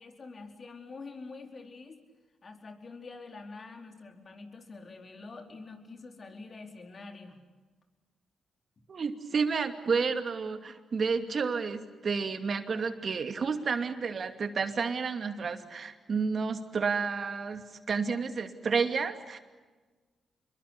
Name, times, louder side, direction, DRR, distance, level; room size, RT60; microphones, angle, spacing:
voice 1, 0.0-2.0 2.4-7.4, left 3 dB, 50° left, 4 dB, 4.5 m, -46 dB
voice 2, 8.9-19.4, right 5 dB, 55° right, 7 dB, 2.6 m, -31 dB
27.5 x 22.5 x 8.5 m, 1.3 s
supercardioid pair, 55°, 0 cm